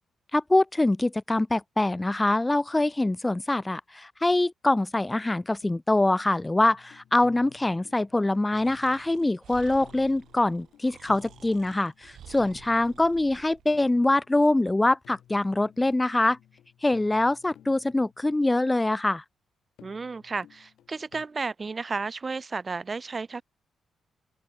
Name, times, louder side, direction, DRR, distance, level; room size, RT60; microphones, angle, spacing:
voice 1, 0.3-16.4 16.8-19.2, left 2 dB, 15° left, 0.5 m, -24 dB
sound 1, 5.1-5.7 6.0-18.6 19.8-21.3, left 10 dB, 80° left, 3.8 m, -56 dB
Breathing, 8.5-13.7, right 10 dB, 75° right, 2.8 m, -51 dB
voice 2, 19.8-23.4, right 4 dB, 40° right, 0.5 m, -33 dB
open air
cardioid pair, 65°, 0 cm